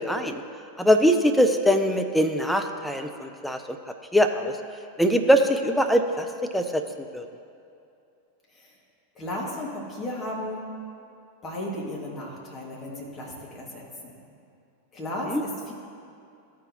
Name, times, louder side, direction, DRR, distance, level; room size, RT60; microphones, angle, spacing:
voice 1, 0.1-0.4 0.8-3.8 4.1-4.6 5.0-6.3 6.5-6.8 7.1-7.3 15.3-15.4, equal, ahead, 5 dB, 0.5 m, -22 dB
voice 2, 9.2-10.7 11.4-14.2 14.9-15.7, left 1 dB, 25° left, -4 dB, 1.9 m, -35 dB
13.5 x 5.2 x 2.8 m, 2.6 s
figure-of-eight pair, 90°, 0 cm